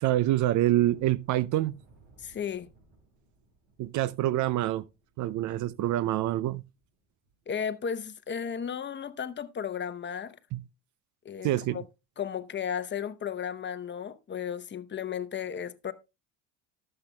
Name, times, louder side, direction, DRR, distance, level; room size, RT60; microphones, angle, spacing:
voice 1, 0.0-1.7 3.8-4.8 5.2-6.6 10.5-10.6 11.4-11.8, right 14 dB, 50° right, 0.5 m, -26 dB
sound 1, 0.9-7.6 8.0-8.1 8.5-8.7 9.2-9.3, right 2 dB, 80° right, 5.6 m, -62 dB
voice 2, 2.2-2.7 7.5-10.4 11.2-11.8 12.2-15.9, left 8 dB, 30° left, 0.8 m, -34 dB
19.0 x 7.7 x 2.2 m
supercardioid pair, 95°, 38 cm